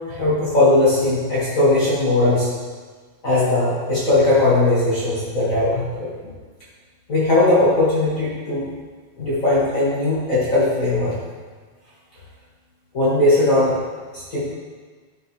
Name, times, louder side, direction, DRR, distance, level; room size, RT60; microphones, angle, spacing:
voice 1, 0.1-2.5 3.2-6.1 7.1-8.7 9.2-11.2 12.9-13.8 14.1-14.5, left 2 dB, 35° left, -9 dB, 1.3 m, -18 dB
11.0 x 6.2 x 3.3 m, 1.5 s
omnidirectional pair, 4.6 m